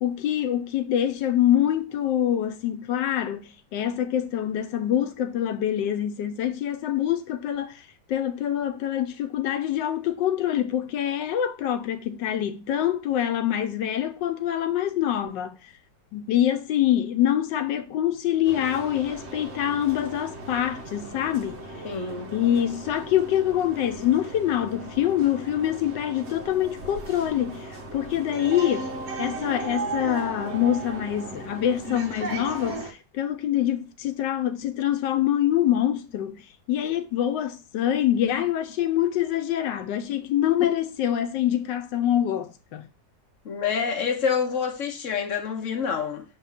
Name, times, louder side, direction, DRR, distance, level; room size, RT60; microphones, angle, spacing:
voice 1, 0.0-15.7 16.1-21.6 22.3-28.9 29.2-42.9, left 11 dB, 85° left, 1.3 m, -25 dB
sound 1, 18.4-32.9, right 2 dB, 45° right, 1.3 m, -36 dB
voice 2, 21.8-22.3 43.4-46.2, left 6 dB, 50° left, 1.5 m, -27 dB
6.8 x 3.6 x 5.7 m
omnidirectional pair, 1.9 m